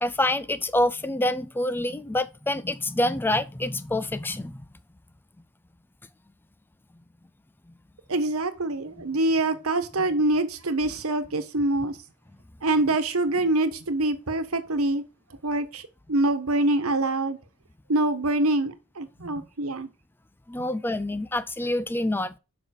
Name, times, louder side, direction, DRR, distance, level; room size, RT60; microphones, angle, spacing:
voice 1, 0.0-4.6 20.5-22.4, left 1 dB, 10° left, 0.4 m, -26 dB
voice 2, 8.1-12.0 12.6-15.0 15.4-17.4 17.9-19.9 20.6-20.7, right 2 dB, 75° right, 1.3 m, -25 dB
7.1 x 5.5 x 6.5 m
head